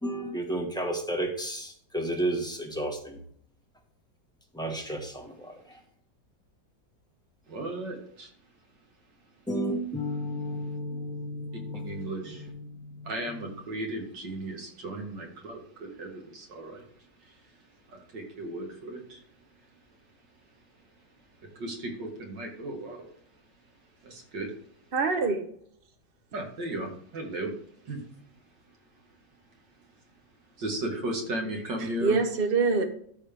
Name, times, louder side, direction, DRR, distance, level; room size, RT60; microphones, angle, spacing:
voice 1, 0.0-3.2 4.5-5.8 9.5-13.5, right 1 dB, 5° left, 1 dB, 1.2 m, -33 dB
voice 2, 7.5-8.3 11.8-12.4 13.1-16.8 17.9-19.2 21.6-23.1 24.0-24.5 26.3-27.5 27.9-28.0 30.6-32.1, right 1 dB, 85° right, 2 dB, 2.4 m, -35 dB
voice 3, 24.9-25.5 31.8-32.8, right 4 dB, 40° right, 6 dB, 1.0 m, -25 dB
13.5 x 4.7 x 3.4 m, 0.63 s
omnidirectional pair, 1.9 m